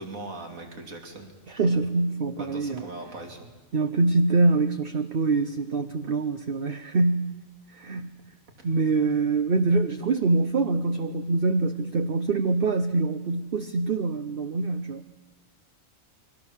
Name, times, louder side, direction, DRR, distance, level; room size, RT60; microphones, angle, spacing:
voice 1, 0.0-1.3 1.6-1.8 2.3-3.5 8.6-8.7, right 2 dB, 80° right, 4 dB, 3.4 m, -40 dB
voice 2, 1.5-2.9 3.7-7.3 7.7-8.2 8.6-15.0, right 3 dB, 45° right, 8 dB, 1.1 m, -24 dB
29.0 x 22.5 x 7.3 m, 1.2 s
omnidirectional pair, 1.4 m